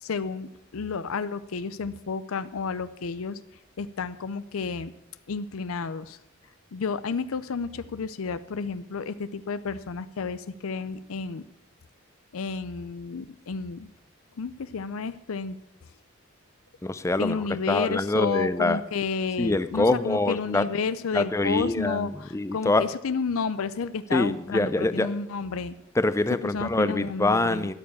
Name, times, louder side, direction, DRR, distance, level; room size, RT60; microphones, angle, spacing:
voice 1, 0.0-3.4 3.8-4.9 5.3-6.2 6.7-11.4 12.3-13.9 14.4-15.6 17.2-25.8 26.4-27.7, left 5 dB, 75° left, 14 dB, 0.5 m, -31 dB
voice 2, 16.8-17.4 17.7-18.8 19.4-20.6 21.1-22.9 24.1-25.1 26.0-27.7, left 2 dB, 15° left, 13 dB, 0.5 m, -25 dB
13.5 x 9.7 x 7.1 m, 0.88 s
head